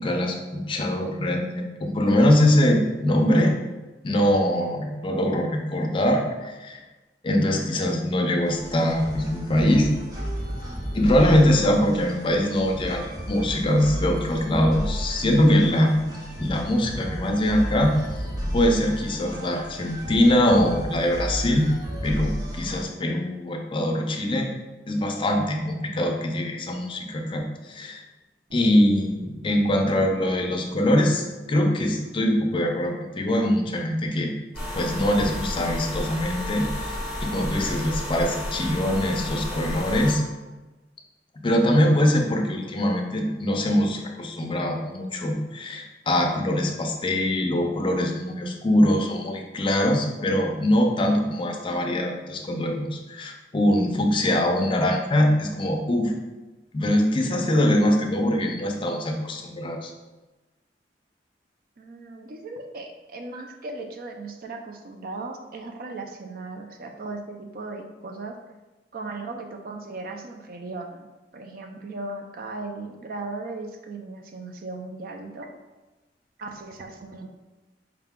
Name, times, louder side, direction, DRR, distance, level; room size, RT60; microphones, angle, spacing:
voice 1, 0.0-3.5 4.0-6.8 7.2-9.9 10.9-17.9 18.5-21.7 22.0-24.5 24.9-28.0 28.5-34.3 34.7-36.9 37.2-40.2 41.4-56.1 56.7-59.9, left 1 dB, 30° left, 2 dB, 0.5 m, -23 dB
sound 1, 8.4-22.9, equal, 20° right, 0.7 m, -33 dB
Bass guitar, 28.5-32.3, equal, 90° right, 0.9 m, -46 dB
sound 2, 34.5-40.1, left 1 dB, 5° right, 1.1 m, -32 dB
voice 2, 61.8-68.4 68.9-71.1 71.3-75.5 76.4-77.3, right 3 dB, 55° right, 4 dB, 0.4 m, -37 dB
4.7 x 2.2 x 3.6 m, 1.1 s
head